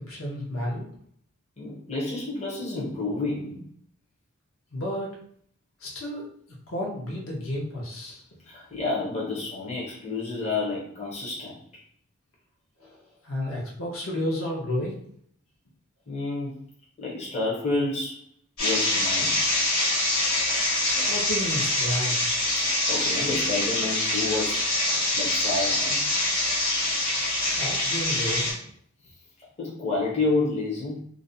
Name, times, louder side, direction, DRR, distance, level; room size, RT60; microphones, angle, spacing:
voice 1, 0.1-0.8 4.7-5.1 5.8-6.2 6.7-8.2 12.8-13.0 13.2-15.0 20.9-22.3 27.4-28.5, left 1 dB, 65° left, -2 dB, 0.7 m, -31 dB
voice 2, 1.6-3.6 8.4-11.6 13.4-13.6 16.1-16.6 17.0-18.2 18.6-19.4 22.6-24.7 25.1-26.0 29.6-31.0, left 3 dB, 30° left, -6 dB, 0.6 m, -29 dB
sound 1, 18.6-28.5, left 1 dB, 85° left, 1.1 m, -25 dB
2.5 x 2.1 x 2.6 m, 0.63 s
head